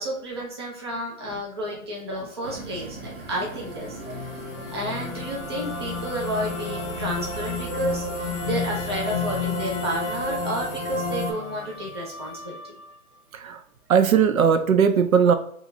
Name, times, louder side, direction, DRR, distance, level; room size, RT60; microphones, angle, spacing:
voice 1, 0.0-4.3 4.7-12.6, right 1 dB, 20° right, -3 dB, 0.4 m, -31 dB
voice 2, 2.1-2.5 3.8-4.4 7.3-7.4 7.8-8.2 10.4-10.5 13.3-13.6 13.9-15.3, right 7 dB, 70° right, 8 dB, 0.7 m, -22 dB
sound 1, 2.4-12.4, right 2 dB, 50° right, 1.5 m, -45 dB
sound 2, 2.8-11.3, left 3 dB, 15° left, 0.9 m, -31 dB
Musical instrument, 4.0-13.2, left 6 dB, 60° left, 0.5 m, -40 dB
4.6 x 2.9 x 2.6 m, 0.69 s
hypercardioid pair, 145°, 43 cm